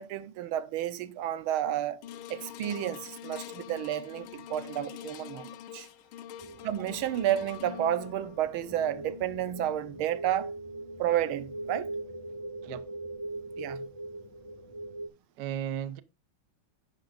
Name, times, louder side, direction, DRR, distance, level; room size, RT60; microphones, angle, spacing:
voice 1, 0.0-2.0 2.3-5.9 6.6-10.5 11.0-11.9 13.6-13.8, right 11 dB, 85° right, 1.6 m, -31 dB
sound 1, 2.0-12.4 13.0-13.1, left 10 dB, 85° left, 1.5 m, -46 dB
sound 2, 6.4-15.1, right 2 dB, 15° right, 2.0 m, -41 dB
voice 2, 12.6-12.9 15.4-16.0, right 10 dB, 70° right, 1.1 m, -35 dB
11.0 x 9.0 x 2.5 m
omnidirectional pair, 2.2 m